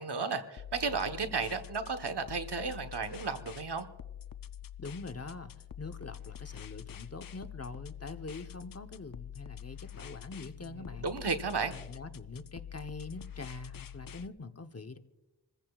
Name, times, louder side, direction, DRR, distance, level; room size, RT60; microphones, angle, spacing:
voice 1, 0.0-3.9 11.0-11.7, right 4 dB, 75° right, 7 dB, 1.2 m, -33 dB
sound 1, 0.6-14.3, left 10 dB, 55° left, 0.5 m, -46 dB
voice 2, 4.8-5.5 5.8-11.1 11.7-15.0, left 3 dB, 35° left, 8 dB, 1.0 m, -44 dB
27.0 x 15.0 x 2.4 m, 1.0 s
wide cardioid pair, 45°, 41 cm